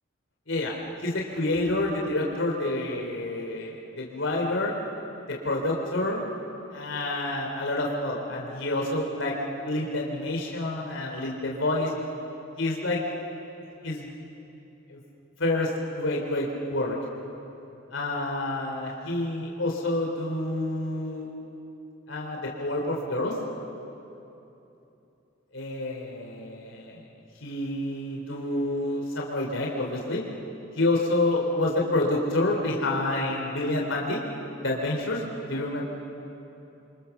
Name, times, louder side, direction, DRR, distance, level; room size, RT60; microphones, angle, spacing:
voice 1, 1.0-4.7 5.3-6.3 6.7-9.3 9.6-11.9 12.6-13.0 13.8-14.1 14.9-15.0 15.4-15.7 16.0-17.0 17.9-21.3 22.1-23.3 25.5-27.0 27.4-30.2 30.8-34.2 34.6-35.8, left 2 dB, 75° left, -1 dB, 3.2 m, -28 dB
29.5 x 24.5 x 7.0 m, 2.9 s
head